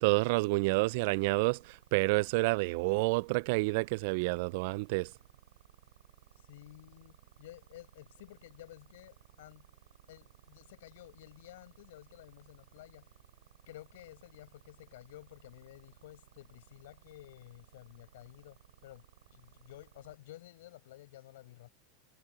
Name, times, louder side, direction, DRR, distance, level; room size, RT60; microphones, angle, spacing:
voice 1, 0.0-1.6 1.9-5.1, right 25 dB, 65° right, 0.3 m, -28 dB
sound 1, 0.6-20.2, right 13 dB, 85° right, 4.0 m, -60 dB
voice 2, 6.4-9.7 10.1-13.1 13.7-19.1 19.3-21.7, left 15 dB, 75° left, 7.6 m, -53 dB
supercardioid pair, 115°, 0 cm